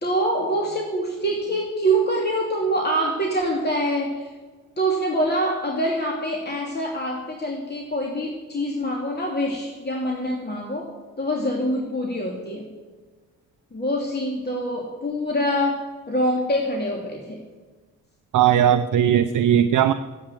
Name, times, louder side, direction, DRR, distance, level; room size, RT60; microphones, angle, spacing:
voice 1, 0.0-4.3 4.8-12.7 13.7-17.4, right 1 dB, 25° left, 0 dB, 2.9 m, -25 dB
voice 2, 18.3-19.9, right 10 dB, 50° right, 10 dB, 0.7 m, -18 dB
14.5 x 10.0 x 8.4 m, 1.4 s
figure-of-eight pair, 40°, 40 cm